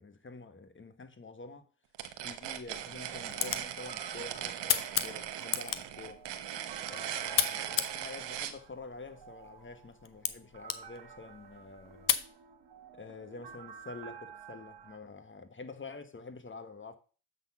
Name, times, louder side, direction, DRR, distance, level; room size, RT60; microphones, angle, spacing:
voice 1, 0.0-1.7 2.2-6.2 6.9-12.2 12.9-17.0, left 3 dB, 30° left, 1.4 m, -47 dB
sound 1, 1.9-8.6, right 11 dB, 85° right, 1.0 m, -39 dB
sound 2, 2.2-12.3, left 8 dB, 50° left, 0.8 m, -37 dB
sound 3, 3.0-15.0, right 7 dB, 65° right, 1.5 m, -52 dB
7.3 x 4.1 x 6.0 m
supercardioid pair, 55°, 42 cm